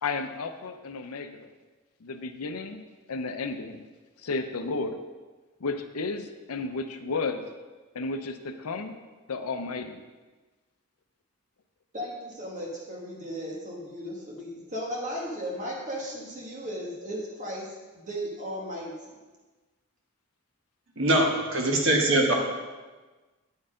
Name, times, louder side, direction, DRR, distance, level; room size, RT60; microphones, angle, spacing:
voice 1, 0.0-1.5 2.0-2.8 3.1-3.8 4.2-5.0 5.6-7.4 7.9-8.9 9.3-10.0, left 3 dB, 85° left, 8 dB, 0.6 m, -33 dB
voice 2, 11.9-17.7 18.0-18.9, equal, 35° right, -3 dB, 1.5 m, -35 dB
voice 3, 21.0-22.4, right 1 dB, 60° right, 1 dB, 1.3 m, -22 dB
9.4 x 4.6 x 5.0 m, 1.3 s
head